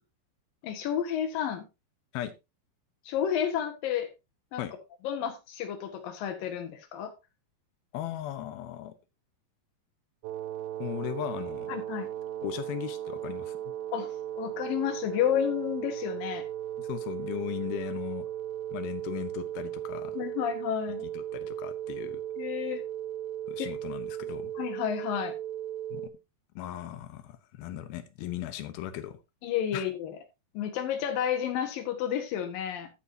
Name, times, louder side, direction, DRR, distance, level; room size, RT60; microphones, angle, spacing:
voice 1, 0.6-1.7 3.1-4.1 4.5-4.7 5.0-7.1 11.7-12.1 13.9-16.4 20.1-21.0 22.4-22.8 23.6-23.7 24.5-25.3 29.4-30.2 30.5-32.9, left 9 dB, 70° left, 3.2 m, -31 dB
voice 2, 7.9-8.9 10.8-11.7 12.4-13.6 16.8-18.3 18.7-20.2 21.1-22.2 23.5-24.5 25.9-26.1 26.6-29.2 29.7-29.8, left 12 dB, 90° left, 2.9 m, -37 dB
sound 1, 10.2-26.1, right 11 dB, 85° right, 2.8 m, -36 dB
13.0 x 8.5 x 2.8 m
omnidirectional pair, 4.2 m